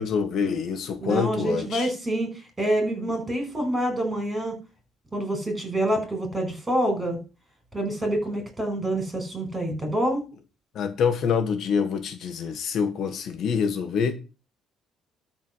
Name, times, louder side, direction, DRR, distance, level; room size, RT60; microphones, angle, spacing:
voice 1, 0.0-1.9 10.7-14.1, left 6 dB, 55° left, 1.6 m, -26 dB
voice 2, 1.0-2.3 2.6-4.6 5.1-7.2 7.7-10.2, right 1 dB, 15° right, 5.5 m, -26 dB
12.5 x 4.6 x 6.3 m
cardioid pair, 130°, 0 cm